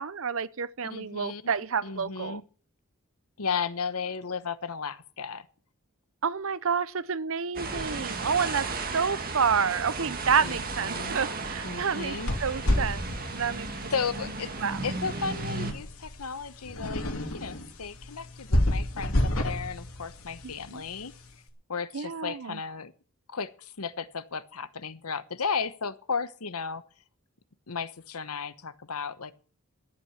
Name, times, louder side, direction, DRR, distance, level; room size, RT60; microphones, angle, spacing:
voice 1, 0.0-2.4 6.2-8.7 8.9-13.9 14.6-14.8 20.4-20.8 21.9-22.6, right 6 dB, 65° right, 0.7 m, -29 dB
voice 2, 0.8-1.5 1.8-2.4 3.4-5.5 10.4-11.2 11.6-12.3 13.9-14.5 14.8-17.0 17.3-21.1 21.7-22.9 23.3-26.8 27.7-29.3, left 5 dB, 85° left, 1.1 m, -34 dB
sound 1, 7.5-15.7, right 3 dB, 40° right, 1.9 m, -35 dB
sound 2, 12.0-21.3, left 1 dB, 70° left, 2.8 m, -31 dB
13.5 x 8.7 x 7.4 m
head